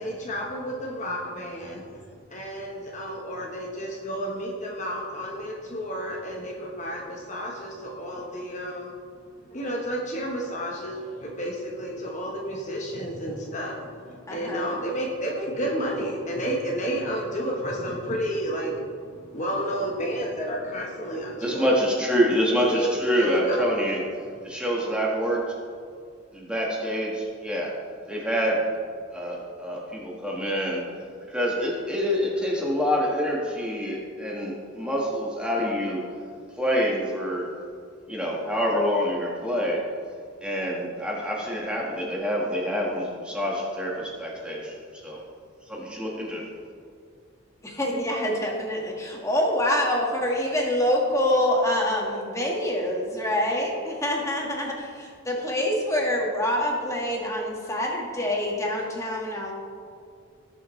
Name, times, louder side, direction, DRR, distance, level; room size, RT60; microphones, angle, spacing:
voice 1, 0.0-1.8 2.3-8.9 9.5-21.7 22.7-22.9 23.2-23.6, equal, 35° left, -1 dB, 1.1 m, -31 dB
voice 2, 14.3-14.8 47.6-59.5, left 1 dB, 15° left, -1 dB, 1.6 m, -26 dB
voice 3, 21.4-24.0 24.4-25.5 26.3-27.7 28.1-28.6 29.1-30.9 31.3-36.0 36.6-37.5 38.1-39.8 40.4-45.2 45.7-46.5, equal, 5° right, -3 dB, 1.5 m, -26 dB
18.5 x 7.2 x 3.2 m, 2.3 s
head